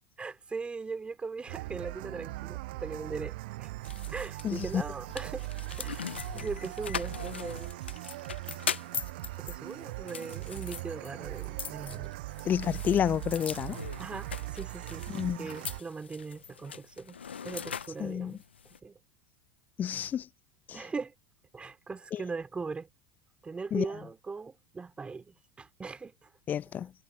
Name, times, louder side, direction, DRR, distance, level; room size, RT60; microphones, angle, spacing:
voice 1, 0.2-3.7 4.1-5.5 5.8-7.7 9.4-12.1 14.0-15.1 15.4-17.2 17.4-18.4 18.8-19.0 20.7-21.1 21.5-22.9 23.4-26.3, right 4 dB, 20° right, 3.3 m, -40 dB
sound 1, 1.5-15.8, right 20 dB, 65° right, 6.7 m, -40 dB
sound 2, 3.8-18.8, left 7 dB, 90° left, 0.8 m, -41 dB
voice 2, 4.4-4.8 12.5-13.8 15.1-15.5 18.0-18.4 19.8-20.3 20.7-20.8 22.1-22.2 23.7-23.9 26.5-26.9, left 9 dB, 30° left, 0.4 m, -30 dB
hypercardioid pair, 85°, 6 cm